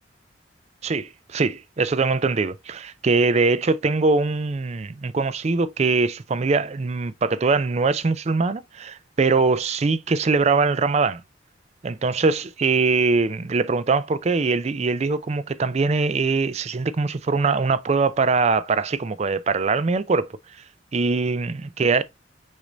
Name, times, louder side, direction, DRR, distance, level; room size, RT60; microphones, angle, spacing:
voice 1, 0.8-11.2 11.8-20.3 20.9-22.0, right 4 dB, 35° right, 0.4 m, -22 dB
6.3 x 2.6 x 3.0 m
head